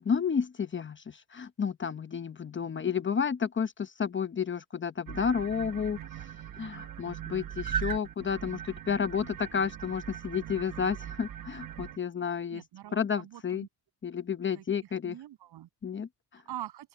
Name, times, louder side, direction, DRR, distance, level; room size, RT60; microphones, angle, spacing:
voice 1, 0.0-6.0 6.6-12.6 12.9-13.7 14.0-15.2 15.8-16.4, left 7 dB, 30° left, 0.9 m, -31 dB
sound 1, 5.1-12.0, right 9 dB, 55° right, 1.2 m, -39 dB
voice 2, 12.5-13.7 14.5-15.7 16.3-16.9, right 13 dB, 90° right, 7.9 m, -44 dB
open air
cardioid pair, 130°, 38 cm